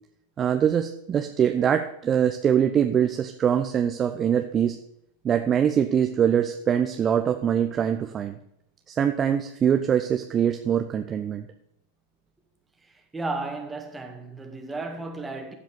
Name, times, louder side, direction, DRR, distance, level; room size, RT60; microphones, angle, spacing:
voice 1, 0.4-4.8 5.2-8.4 8.9-11.5, right 8 dB, 25° right, 0.8 m, -23 dB
voice 2, 12.8-15.5, right 3 dB, 10° right, 2.0 m, -34 dB
15.0 x 5.1 x 6.8 m
figure-of-eight pair, 90°, 0 cm